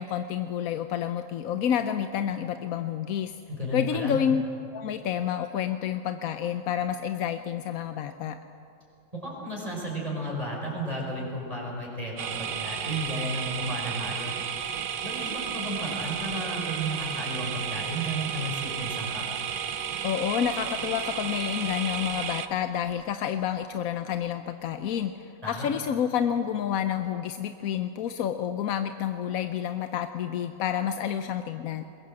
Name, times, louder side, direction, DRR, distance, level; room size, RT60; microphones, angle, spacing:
voice 1, 0.0-3.3 3.7-4.4 4.7-8.4 20.0-31.8, left 9 dB, 60° left, 9 dB, 1.0 m, -29 dB
voice 2, 3.5-4.2 9.1-14.3 15.0-19.2 25.4-25.7, right 1 dB, 20° right, -3 dB, 5.1 m, -33 dB
sound 1, 12.2-22.5, right 8 dB, 65° right, 1.5 m, -33 dB
21.5 x 21.5 x 7.6 m, 2.6 s
omnidirectional pair, 1.9 m